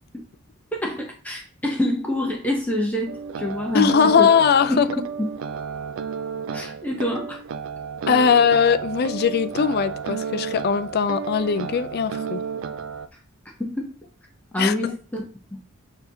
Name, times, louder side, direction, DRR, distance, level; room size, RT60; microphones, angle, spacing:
voice 1, 0.7-4.3 4.7-4.8 5.2-5.3 6.5-7.4 13.6-13.9 14.5-15.2 15.5-15.6, left 1 dB, 5° left, 0.6 m, -26 dB
sound 1, 3.1-13.1, right 6 dB, 60° right, 0.3 m, -32 dB
voice 2, 3.7-4.9 8.1-12.4 14.6-14.9, left 6 dB, 45° left, 0.3 m, -20 dB
6.7 x 2.8 x 2.7 m
head